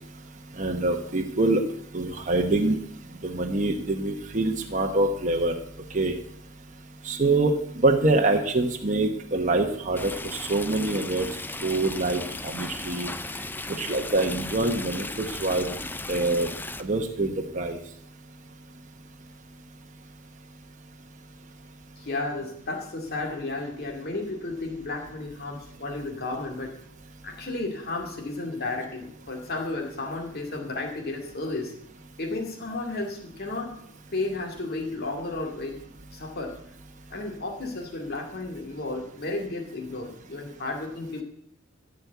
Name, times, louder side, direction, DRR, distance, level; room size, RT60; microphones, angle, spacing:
voice 1, 0.6-1.6 1.9-2.8 3.2-5.5 5.9-6.1 7.0-11.3 11.6-13.1 13.8-15.7 16.1-16.5 16.8-17.8, right 2 dB, 40° right, 3 dB, 1.1 m, -25 dB
Stream, 9.9-16.8, left 2 dB, 10° left, 0.5 m, -36 dB
voice 2, 22.0-26.7 27.2-31.7 32.2-33.7 34.1-35.8 36.1-36.5 37.1-41.2, left 2 dB, 50° left, 0 dB, 2.4 m, -33 dB
14.5 x 5.4 x 8.1 m, 0.70 s
head